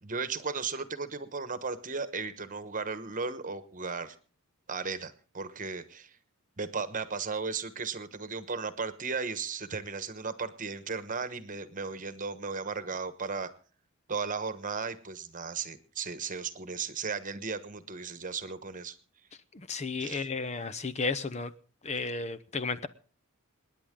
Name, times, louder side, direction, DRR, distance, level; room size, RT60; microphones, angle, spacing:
voice 1, 0.0-4.1 4.7-6.2 6.6-13.5 14.1-19.0 20.0-20.3, right 5 dB, 35° right, 1.2 m, -35 dB
voice 2, 19.5-21.5 21.8-22.9, left 4 dB, 30° left, 0.6 m, -33 dB
27.5 x 10.0 x 3.7 m
head